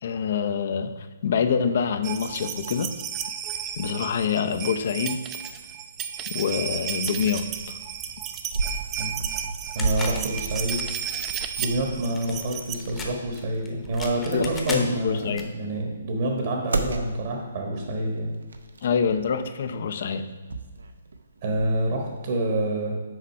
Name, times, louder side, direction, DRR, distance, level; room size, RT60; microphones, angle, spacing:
voice 1, 0.0-2.9 3.8-5.2 6.3-7.8 14.3-15.5 18.8-20.3, left 6 dB, 55° left, 9 dB, 0.5 m, -26 dB
sound 1, 2.0-12.8 13.9-14.0 14.1-14.2, right 9 dB, 20° right, 0.4 m, -33 dB
sound 2, 3.2-22.3, right 3 dB, 90° right, 0.6 m, -36 dB
voice 2, 9.7-10.8 11.6-18.3 21.4-22.9, right 1 dB, 55° right, 1 dB, 1.4 m, -27 dB
sound 3, 9.8-15.4, left 3 dB, 15° left, 0.9 m, -39 dB
6.4 x 4.3 x 5.5 m, 1.3 s
hypercardioid pair, 145°, 0 cm